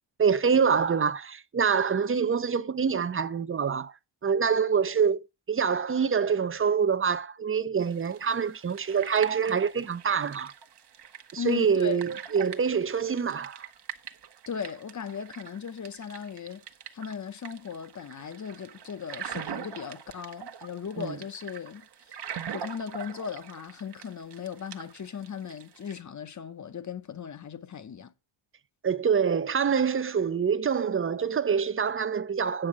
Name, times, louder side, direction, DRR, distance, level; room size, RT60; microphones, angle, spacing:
voice 1, 0.2-3.9 4.2-10.5 11.3-13.7 21.0-21.2 28.8-32.7, right 6 dB, 30° right, 0.4 m, -26 dB
sound 1, 7.8-26.0, right 8 dB, 55° right, 1.0 m, -43 dB
voice 2, 11.4-12.1 14.5-16.6 16.9-22.2 22.5-28.1, left 7 dB, 40° left, 0.7 m, -37 dB
8.9 x 6.4 x 4.7 m
wide cardioid pair, 125°, 47 cm